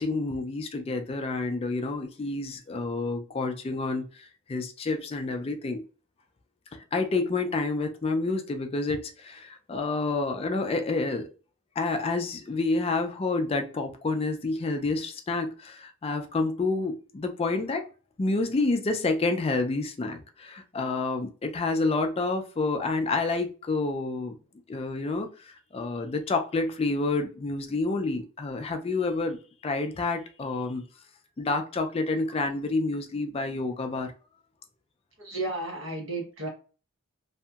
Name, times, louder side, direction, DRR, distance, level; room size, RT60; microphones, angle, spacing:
voice 1, 0.0-5.8 6.7-11.3 11.8-17.8 18.2-24.4 24.7-29.4 29.6-30.8 31.4-34.1, left 3 dB, 30° left, 0.3 m, -29 dB
voice 2, 35.2-36.5, right 2 dB, 65° right, 0.8 m, -33 dB
2.7 x 2.6 x 2.3 m
head